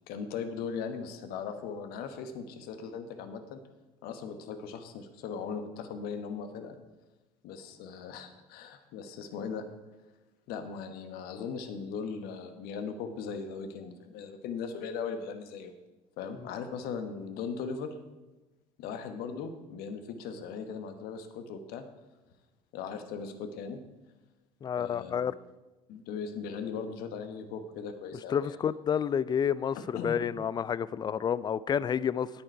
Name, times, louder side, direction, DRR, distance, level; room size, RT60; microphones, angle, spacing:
voice 1, 0.1-3.6 4.0-6.8 7.4-9.7 10.5-15.7 16.2-17.9 18.8-21.8 22.7-23.8 24.7-25.3 25.9-28.6 29.7-30.2, left 6 dB, 55° left, 8 dB, 1.2 m, -38 dB
voice 2, 24.6-25.3 28.3-32.3, left 8 dB, 25° left, 19 dB, 0.4 m, -29 dB
10.0 x 8.6 x 4.6 m, 1.1 s
hypercardioid pair, 70°, 18 cm